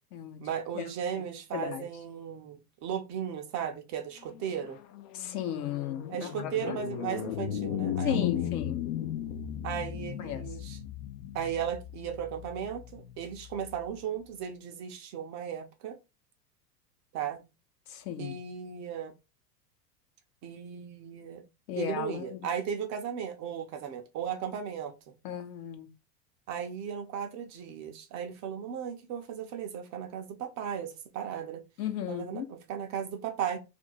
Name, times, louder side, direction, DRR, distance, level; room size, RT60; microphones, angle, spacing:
voice 1, 0.4-4.8 6.1-8.5 9.6-10.8 11.3-16.0 17.1-17.4 18.2-19.1 20.4-21.4 21.8-24.9 26.5-31.6 32.1-33.6, right 8 dB, 35° right, 0.6 m, -36 dB
voice 2, 1.5-1.9 5.1-6.8 8.0-8.8 10.2-10.5 17.9-18.3 21.7-22.5 25.2-25.9 31.8-32.5, left 9 dB, 60° left, 0.9 m, -35 dB
sound 1, 4.3-13.9, left 10 dB, 45° left, 0.4 m, -36 dB
2.5 x 2.1 x 4.0 m
hypercardioid pair, 95°, 48 cm